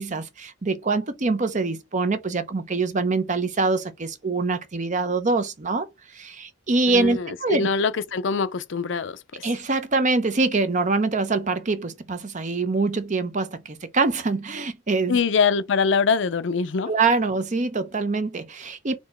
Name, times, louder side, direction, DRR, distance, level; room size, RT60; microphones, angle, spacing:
voice 1, 0.0-5.9 6.1-7.7 9.4-15.2 16.9-19.0, right 3 dB, 40° right, 0.7 m, -24 dB
voice 2, 6.9-9.5 15.1-16.9, left 5 dB, 65° left, 0.5 m, -23 dB
4.4 x 2.8 x 4.3 m
head